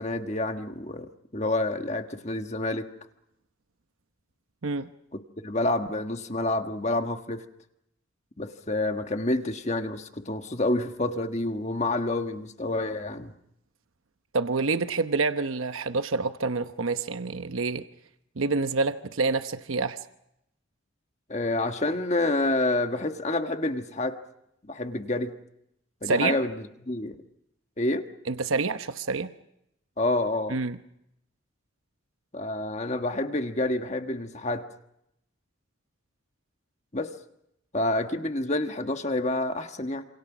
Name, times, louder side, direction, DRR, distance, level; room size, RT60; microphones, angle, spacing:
voice 1, 0.0-2.9 5.1-7.4 8.4-13.3 21.3-24.2 24.6-25.3 26.0-27.2 27.8-28.1 30.0-30.6 32.3-34.7 36.9-37.1 37.7-40.0, left 2 dB, 35° left, 6 dB, 1.5 m, -28 dB
voice 2, 14.3-17.8 18.4-20.0 26.1-26.4 28.3-29.3 30.5-30.8, right 3 dB, 80° right, 9 dB, 1.0 m, -27 dB
28.0 x 27.5 x 6.1 m, 0.81 s
head